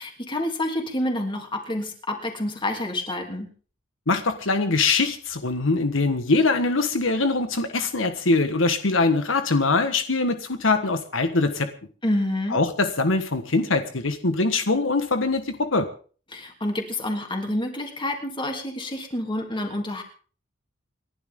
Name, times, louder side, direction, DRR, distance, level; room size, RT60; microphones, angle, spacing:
voice 1, 0.0-3.5 12.0-12.6 16.3-20.0, left 1 dB, 25° left, 3 dB, 3.0 m, -28 dB
voice 2, 4.1-11.7 12.5-15.9, left 3 dB, 80° left, 8 dB, 1.5 m, -23 dB
28.5 x 11.5 x 3.8 m, 0.41 s
head